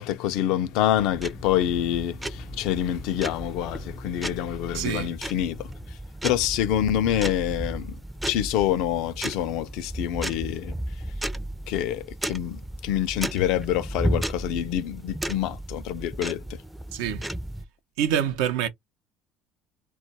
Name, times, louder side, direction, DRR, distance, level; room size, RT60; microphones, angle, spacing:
voice 1, 0.0-5.7 6.2-8.0 8.2-10.7 11.7-16.6, left 11 dB, 75° left, 0.4 m, -26 dB
sound 1, 0.7-17.6, right 1 dB, 10° right, 0.4 m, -34 dB
voice 2, 4.7-5.1 16.9-17.2 18.0-18.7, right 9 dB, 80° right, 0.6 m, -26 dB
2.3 x 2.2 x 3.9 m
supercardioid pair, 85°, 0 cm